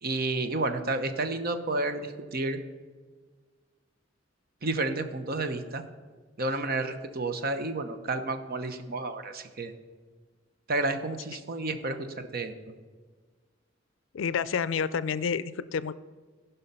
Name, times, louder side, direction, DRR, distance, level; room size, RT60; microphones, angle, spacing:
voice 1, 0.0-2.6 4.6-5.8 6.4-9.7 10.7-12.5, right 2 dB, 50° right, 9 dB, 0.8 m, -31 dB
voice 2, 14.1-15.9, left 6 dB, 80° left, 17 dB, 0.4 m, -29 dB
15.5 x 5.6 x 5.5 m, 1.4 s
head